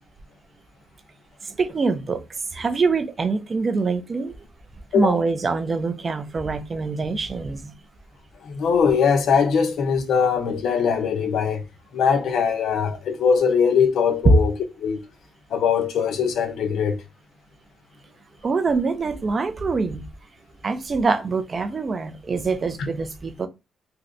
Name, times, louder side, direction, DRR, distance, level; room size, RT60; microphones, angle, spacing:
voice 1, 1.4-2.2 2.5-4.3 4.9-7.7 18.4-20.0 20.6-23.5, right 4 dB, 30° right, 0.4 m, -24 dB
voice 2, 8.4-11.6 11.9-14.5 14.8-15.0 15.5-17.0, left 6 dB, 70° left, 0.6 m, -21 dB
3.1 x 2.7 x 2.5 m
cardioid pair, 150°, 0 cm